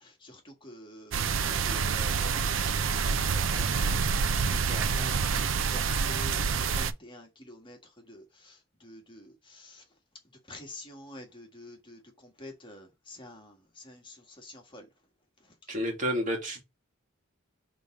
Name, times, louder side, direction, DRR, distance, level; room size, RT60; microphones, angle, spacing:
voice 1, 0.0-4.0 4.5-7.8 8.1-9.8 10.5-14.8, left 1 dB, 25° left, 1.7 m, -47 dB
sound 1, 1.1-6.9, right 5 dB, 65° right, 0.6 m, -27 dB
voice 2, 15.7-16.6, equal, 40° right, 2.4 m, -30 dB
6.8 x 3.6 x 4.9 m
head